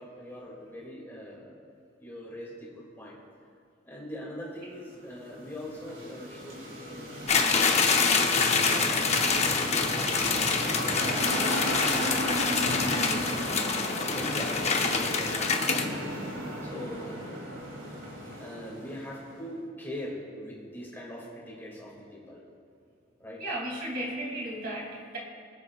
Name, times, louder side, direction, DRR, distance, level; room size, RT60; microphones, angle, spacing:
voice 1, 0.0-1.6 2.0-3.2 3.8-7.1 7.4-9.6 10.3-13.3 13.9-16.2 16.6-17.4 18.2-22.4 23.2-23.4, equal, 10° left, -4 dB, 2.4 m, -42 dB
sound 1, 4.8-19.3, equal, 80° right, 2.9 m, -35 dB
sound 2, 7.3-15.8, left 5 dB, 35° left, 0.8 m, -26 dB
voice 2, 23.4-25.2, right 1 dB, 50° right, -4 dB, 2.9 m, -35 dB
23.0 x 8.6 x 2.4 m, 2.4 s
head